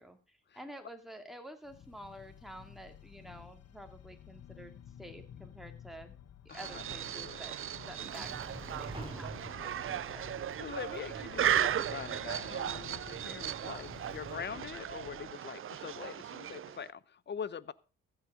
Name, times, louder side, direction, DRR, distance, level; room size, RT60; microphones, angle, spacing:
voice 1, 0.0-6.1 6.5-7.6 7.9-10.2, equal, ahead, 2.6 m, -50 dB
sound 1, 1.6-15.3, left 9 dB, 55° left, 1.0 m, -53 dB
voice 2, 6.5-6.8 7.1-7.4 10.6-17.7, left 7 dB, 35° left, 0.8 m, -43 dB
sound 2, 6.5-16.9, right 10 dB, 45° right, 0.6 m, -36 dB
sound 3, 7.8-14.4, right 2 dB, 15° right, 5.7 m, -48 dB
15.0 x 8.1 x 5.0 m
cardioid pair, 80°, 31 cm